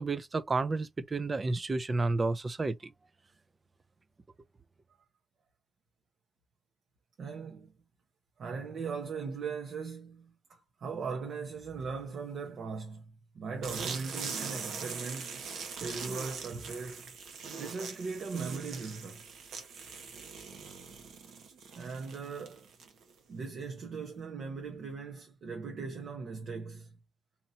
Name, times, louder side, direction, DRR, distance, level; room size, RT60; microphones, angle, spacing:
voice 1, 0.0-2.8, right 3 dB, 25° right, 0.4 m, -31 dB
voice 2, 7.2-7.7 8.4-13.0 13.3-15.5 15.8-17.1 17.6-19.2 21.7-22.7 23.3-26.9, right 5 dB, 60° right, 0.9 m, -39 dB
sound 1, 13.6-23.1, right 5 dB, 75° right, 1.1 m, -42 dB
4.2 x 2.9 x 2.7 m
cardioid pair, 130°, 0 cm